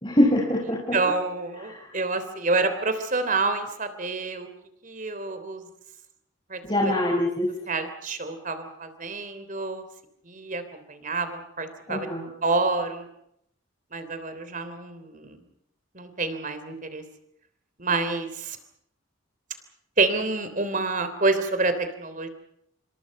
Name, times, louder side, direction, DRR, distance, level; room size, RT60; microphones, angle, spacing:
voice 1, 0.0-1.0 1.6-1.9 6.6-7.5 11.9-12.3, left 1 dB, 25° left, -1 dB, 4.6 m, -24 dB
voice 2, 0.9-4.5 4.8-5.6 6.5-6.9 7.7-9.8 10.3-12.1 12.4-13.1 13.9-15.4 15.9-17.0 17.8-18.6 20.0-22.3, right 3 dB, 40° right, 10 dB, 3.3 m, -28 dB
27.5 x 25.5 x 5.4 m, 0.73 s
head